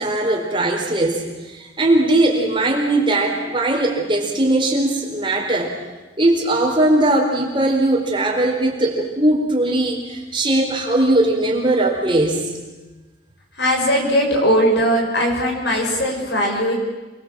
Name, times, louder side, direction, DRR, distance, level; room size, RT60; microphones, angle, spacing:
voice 1, 0.0-5.7 6.2-12.5, right 1 dB, 25° right, 0 dB, 4.3 m, -19 dB
voice 2, 13.6-16.7, equal, 65° left, 0 dB, 7.4 m, -19 dB
28.5 x 22.5 x 7.7 m, 1.2 s
head